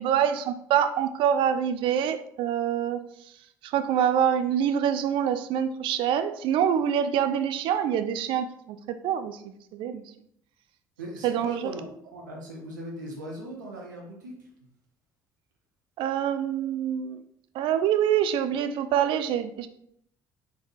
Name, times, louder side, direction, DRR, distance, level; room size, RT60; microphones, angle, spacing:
voice 1, 0.0-3.0 3.6-9.4 9.7-10.0 11.2-11.7 16.0-17.2 17.5-19.7, right 9 dB, 60° right, 10 dB, 0.4 m, -25 dB
voice 2, 11.0-11.8 12.1-14.3 14.6-14.7, right 1 dB, 85° right, -1 dB, 0.8 m, -39 dB
4.0 x 3.5 x 2.5 m, 0.70 s
hypercardioid pair, 55°, 10 cm